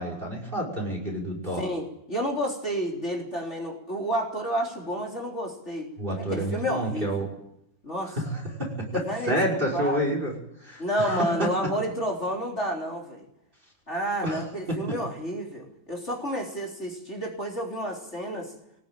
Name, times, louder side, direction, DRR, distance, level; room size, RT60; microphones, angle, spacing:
voice 1, 0.0-1.6 6.0-7.3 8.1-10.3 10.6-11.5 14.2-14.8, equal, 25° right, 0 dB, 5.8 m, -29 dB
voice 2, 1.6-7.1 7.8-8.2 9.1-9.3 9.7-10.0 10.8-13.2 13.9-18.5, equal, 35° left, -1 dB, 4.0 m, -30 dB
23.5 x 19.5 x 9.2 m, 0.81 s
omnidirectional pair, 2.1 m